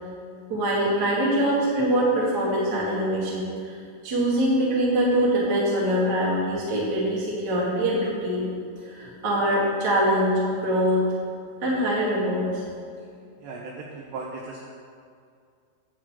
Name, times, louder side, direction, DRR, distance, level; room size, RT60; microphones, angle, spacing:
voice 1, 0.5-3.8 4.0-8.5 8.8-11.0 11.6-12.6, equal, 50° right, -6 dB, 1.2 m, -23 dB
voice 2, 13.4-14.7, right 3 dB, 80° right, -2 dB, 2.5 m, -37 dB
10.0 x 4.8 x 7.9 m, 2.3 s
omnidirectional pair, 5.8 m